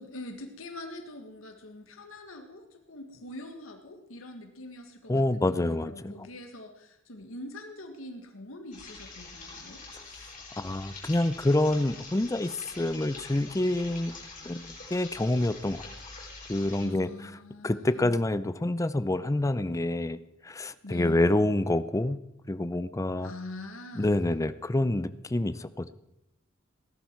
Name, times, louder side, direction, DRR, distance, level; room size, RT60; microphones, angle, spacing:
voice 1, 0.0-9.8 16.7-18.2 20.8-21.5 23.2-24.3, left 2 dB, 85° left, 4 dB, 1.8 m, -43 dB
voice 2, 5.1-6.1 10.6-14.2 14.4-15.9 16.5-17.3 17.6-22.2 22.5-23.3 24.0-25.9, left 1 dB, 15° left, 14 dB, 0.5 m, -27 dB
sound 1, 8.7-16.9, left 3 dB, 40° left, 5.8 m, -45 dB
18.0 x 11.5 x 4.6 m, 0.87 s
head